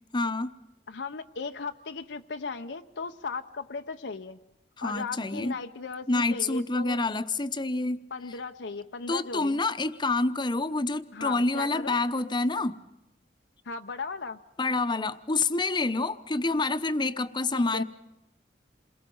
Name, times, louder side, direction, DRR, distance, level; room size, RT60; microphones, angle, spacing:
voice 1, 0.1-0.5 4.8-5.6 6.1-8.0 9.1-12.8 14.6-17.8, left 2 dB, 25° left, 11 dB, 0.9 m, -27 dB
voice 2, 0.9-4.4 4.8-7.0 8.1-9.6 11.1-12.0 13.7-14.4 17.5-17.8, left 4 dB, 85° left, 5 dB, 0.8 m, -37 dB
28.0 x 21.5 x 5.5 m, 0.90 s
head